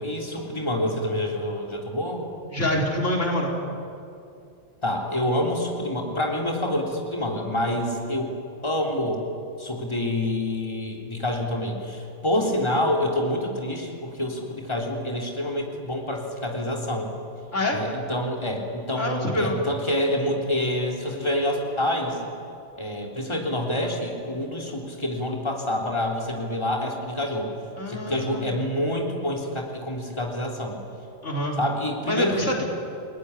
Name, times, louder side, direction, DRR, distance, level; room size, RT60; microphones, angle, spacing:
voice 1, 0.0-2.3 4.8-8.3 8.6-9.2 9.6-17.1 17.7-22.2 22.8-27.5 27.9-30.8 31.6-32.6, left 1 dB, 25° left, 0 dB, 3.6 m, -27 dB
voice 2, 2.5-3.5 17.5-17.8 19.0-19.6 27.8-28.6 31.2-31.6 32.1-32.6, left 1 dB, 85° left, 0 dB, 4.2 m, -26 dB
29.5 x 19.5 x 9.9 m, 2.6 s
omnidirectional pair, 1.2 m